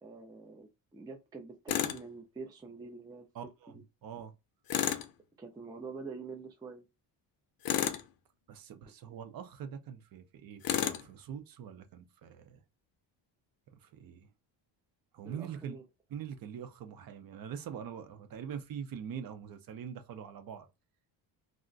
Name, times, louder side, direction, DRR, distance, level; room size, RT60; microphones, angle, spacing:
voice 1, 0.0-3.3 3.7-3.8 5.4-6.8 15.2-15.8, right 4 dB, 10° right, 0.3 m, -46 dB
Tools, 1.7-2.0 4.7-5.1 7.6-8.1 10.6-11.0, left 10 dB, 55° left, 0.5 m, -31 dB
voice 2, 3.3-3.7 4.0-4.3 8.5-12.6 13.8-14.3 15.1-15.8 16.1-20.7, right 8 dB, 50° right, 0.6 m, -43 dB
2.4 x 2.1 x 3.7 m
cardioid pair, 145°, 43 cm